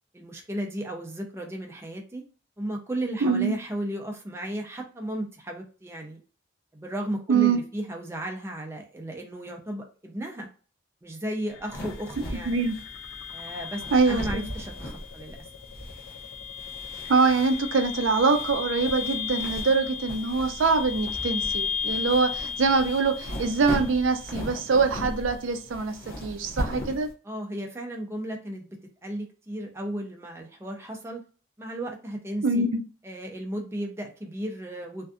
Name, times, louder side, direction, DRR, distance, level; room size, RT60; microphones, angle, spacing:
voice 1, 0.1-2.2 2.6-6.2 6.7-10.5 11.0-12.6 13.3-15.4 27.2-31.2 31.6-32.7 33.0-35.1, right 1 dB, 10° right, 0.4 m, -34 dB
voice 2, 3.2-3.5 7.3-7.6 12.5-12.7 13.9-14.5 17.1-26.0 26.2-27.1 32.4-32.8, right 4 dB, 70° right, 0.4 m, -24 dB
sound 1, 11.5-24.5, left 7 dB, 85° left, 0.3 m, -35 dB
sound 2, 11.7-27.1, equal, 45° left, 0.7 m, -38 dB
2.5 x 2.3 x 2.2 m
head